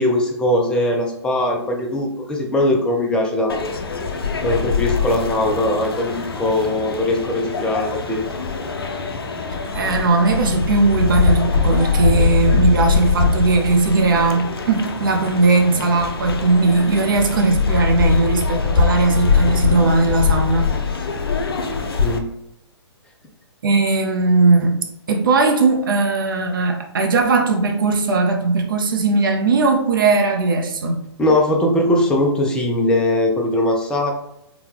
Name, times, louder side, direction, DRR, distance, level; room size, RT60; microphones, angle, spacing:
voice 1, 0.0-3.6 4.4-8.2 22.0-22.3 31.2-34.1, left 1 dB, 5° left, 1 dB, 0.3 m, -20 dB
sound 1, 3.5-22.2, left 5 dB, 55° left, 0.5 m, -22 dB
voice 2, 9.7-20.7 23.6-31.0, right 3 dB, 50° right, 3 dB, 0.6 m, -18 dB
4.0 x 2.2 x 3.5 m, 0.81 s
figure-of-eight pair, 125°, 14 cm